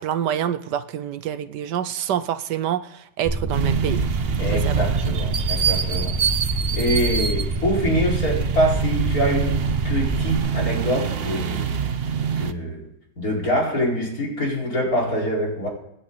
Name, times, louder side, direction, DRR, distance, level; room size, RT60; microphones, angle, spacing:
voice 1, 0.0-4.0 4.5-4.8, right 10 dB, 75° right, 13 dB, 1.3 m, -27 dB
sound 1, 3.2-10.4, right 1 dB, 10° right, 1.0 m, -27 dB
sound 2, 3.5-12.5, right 7 dB, 45° right, 0.8 m, -25 dB
voice 2, 4.4-6.2 6.7-11.7 12.3-12.9 13.2-15.7, equal, 55° left, -3 dB, 5.4 m, -25 dB
26.5 x 10.5 x 4.0 m, 0.83 s
omnidirectional pair, 1.9 m